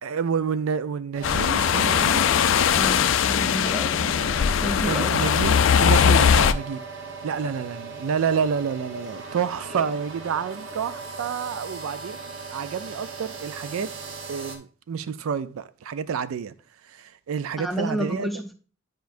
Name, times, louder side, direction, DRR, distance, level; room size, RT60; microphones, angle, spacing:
voice 1, 0.0-2.3 4.8-6.8 7.2-12.2 12.5-13.9 14.3-16.5 16.8-18.3, right 6 dB, 90° right, 0.4 m, -29 dB
sound 1, 1.1-14.6, right 4 dB, 65° right, 0.9 m, -38 dB
sound 2, 1.2-6.5, left 7 dB, 65° left, 0.3 m, -20 dB
voice 2, 3.3-4.2 4.6-5.3 6.1-6.2 9.7-9.9 17.6-18.5, equal, ahead, 0.6 m, -31 dB
9.3 x 4.6 x 2.5 m
head